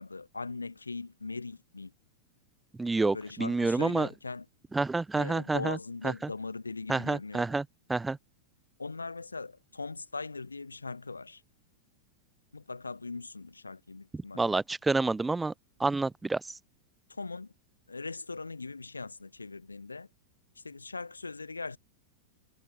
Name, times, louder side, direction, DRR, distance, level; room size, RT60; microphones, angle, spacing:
voice 1, 0.0-1.9 3.1-4.4 5.1-7.5 8.8-11.4 12.5-14.6 17.1-17.5 17.9-20.1 20.6-21.8, left 3 dB, 80° left, 1.1 m, -40 dB
voice 2, 2.8-4.1 4.7-5.8 6.0-6.3 6.9-7.6 7.9-8.2 14.1-15.5 15.8-16.4, right 3 dB, 10° right, 0.5 m, -28 dB
figure-of-eight pair, 90°, 0 cm